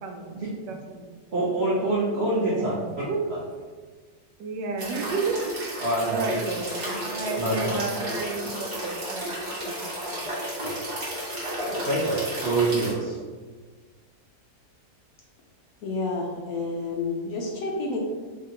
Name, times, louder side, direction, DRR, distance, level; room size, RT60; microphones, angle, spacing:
voice 1, 0.0-0.4 0.7-1.1 2.4-3.2 4.4-5.4 5.7-6.7 7.0-9.4 9.7-9.8 10.1-10.2, right 4 dB, 85° right, 3 dB, 1.3 m, -32 dB
voice 2, 1.3-2.9 3.3-3.4 5.8-6.3 6.9-7.1 7.3-8.1 10.6-10.8 11.6-13.2, right 2 dB, 70° right, -7 dB, 0.6 m, -26 dB
sound 1, 4.8-12.9, equal, 30° right, 1.1 m, -32 dB
voice 3, 15.8-18.0, left 3 dB, 70° left, 0 dB, 1.0 m, -29 dB
3.3 x 2.8 x 3.7 m, 1.4 s
omnidirectional pair, 1.9 m